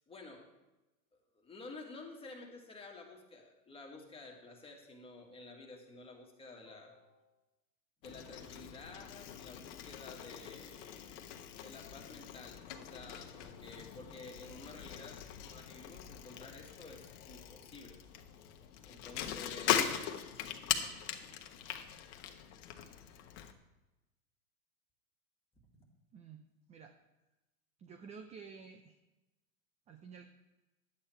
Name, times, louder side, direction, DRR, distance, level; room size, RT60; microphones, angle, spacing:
voice 1, 0.1-0.5 1.1-7.3 8.0-18.0 18.8-20.6 25.7-25.9, left 3 dB, 15° left, 0 dB, 1.8 m, -52 dB
Bicycle, 8.0-23.5, left 10 dB, 50° left, 1.1 m, -41 dB
voice 2, 27.8-29.0 29.9-30.3, right 6 dB, 15° right, 7 dB, 0.4 m, -51 dB
11.0 x 8.6 x 4.4 m, 1.0 s
hypercardioid pair, 115°, 44 cm